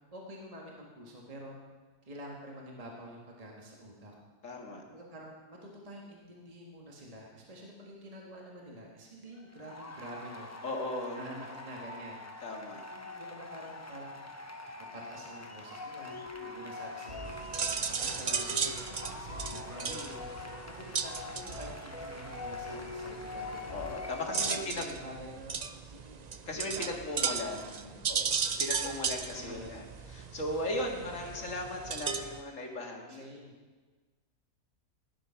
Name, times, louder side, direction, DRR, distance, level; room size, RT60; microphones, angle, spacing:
voice 1, 0.1-1.6 2.0-4.1 4.9-10.5 11.1-12.2 12.9-14.1 14.9-16.2 16.5-20.0 20.6-23.7 24.2-25.6 25.9-26.2 26.7-26.8 27.1-28.0 28.8-29.8 33.1-33.5, equal, 25° right, -2 dB, 1.8 m, -48 dB
voice 2, 4.4-4.8 10.6-11.2 12.4-12.8 16.3-16.7 19.9-20.2 23.7-24.9 26.5-27.6 28.1-33.2, left 1 dB, 60° left, 1 dB, 2.2 m, -37 dB
sound 1, 9.2-24.2, left 1 dB, 15° left, 0.6 m, -47 dB
sound 2, 15.7-25.0, left 3 dB, 90° right, 5.8 m, -43 dB
sound 3, 17.2-32.4, right 6 dB, 50° right, 0.5 m, -36 dB
16.0 x 10.0 x 5.8 m, 1.4 s
omnidirectional pair, 1.6 m